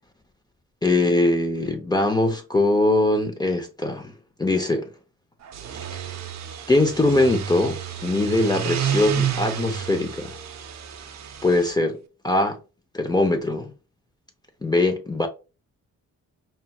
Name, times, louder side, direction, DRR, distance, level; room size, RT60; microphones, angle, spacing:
voice 1, 0.8-4.1 4.4-4.9 5.9-6.1 6.7-10.3 11.4-12.0 12.2-12.6 12.9-13.7 14.6-15.3, left 2 dB, 15° left, 0.5 m, -22 dB
sound 1, 5.4-11.7, right 8 dB, 60° right, 0.6 m, -30 dB
5.5 x 2.8 x 2.3 m
cardioid pair, 140°, 31 cm